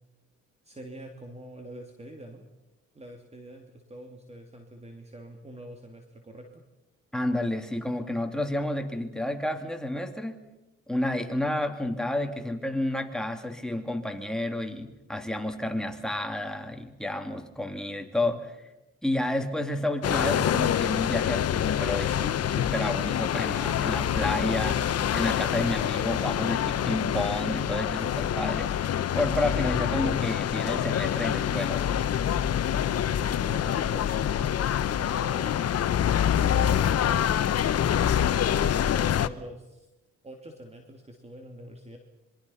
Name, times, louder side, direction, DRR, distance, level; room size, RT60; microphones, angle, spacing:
voice 1, 0.6-2.5 2.9-6.6 33.2-35.6 36.3-37.8 39.0-39.9 40.2-42.0, right 1 dB, 20° right, 3 dB, 2.8 m, -45 dB
voice 2, 7.1-10.4 10.9-18.6 19.0-24.9 25.1-28.7 29.1-32.0, left 1 dB, ahead, 4 dB, 2.8 m, -30 dB
sound 1, 20.0-39.3, left 9 dB, 55° left, 1.0 m, -26 dB
26.5 x 23.0 x 5.8 m, 0.97 s
cardioid pair, 90°, 30 cm